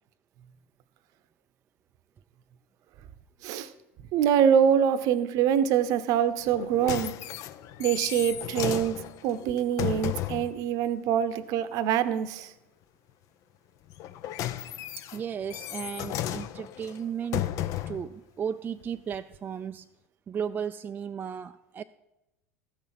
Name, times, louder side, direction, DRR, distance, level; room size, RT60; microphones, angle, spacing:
voice 1, 4.1-7.1 7.8-8.9 9.2-12.5, right 9 dB, 55° right, 13 dB, 0.8 m, -24 dB
sound 1, 6.5-10.5 13.9-18.1 18.8-18.9, left 12 dB, 50° left, 0.5 m, -34 dB
voice 2, 15.1-17.5 17.9-19.9 20.3-21.8, right 7 dB, 25° right, 9 dB, 0.3 m, -35 dB
14.0 x 6.2 x 5.9 m, 0.94 s
hypercardioid pair, 80°, 7 cm